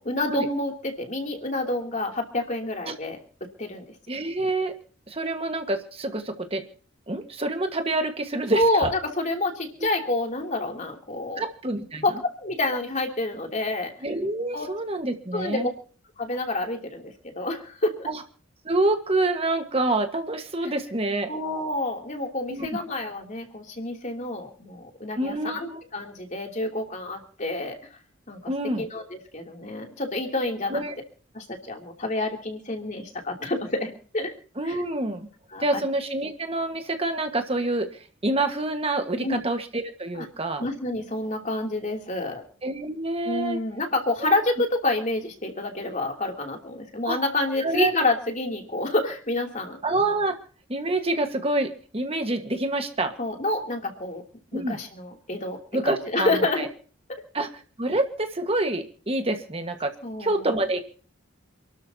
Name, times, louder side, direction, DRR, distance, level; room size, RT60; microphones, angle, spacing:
voice 1, 0.0-3.8 8.5-11.4 12.0-13.9 14.5-14.7 15.3-15.7 16.2-18.1 20.6-20.7 21.3-27.8 28.3-28.4 28.8-30.8 31.3-34.3 34.6-34.8 35.5-35.8 39.2-39.4 40.2-40.3 40.6-42.4 43.2-49.8 53.2-54.2 54.5-56.7 57.1-57.2 60.0-60.6, left 2 dB, 35° left, 2 dB, 2.9 m, -28 dB
voice 2, 4.1-4.8 5.1-6.6 7.1-8.9 11.4-12.0 14.0-15.7 18.1-18.2 18.6-21.3 22.5-22.7 25.2-25.8 28.5-28.9 30.7-30.9 34.6-35.3 35.6-40.6 42.6-43.6 44.2-44.3 47.0-47.2 47.6-47.9 49.8-50.3 50.7-53.1 54.5-54.8 55.7-56.7 57.3-57.5 57.8-59.9 60.2-60.8, right 2 dB, 30° right, 6 dB, 1.5 m, -27 dB
28.5 x 12.5 x 2.8 m, 0.42 s
head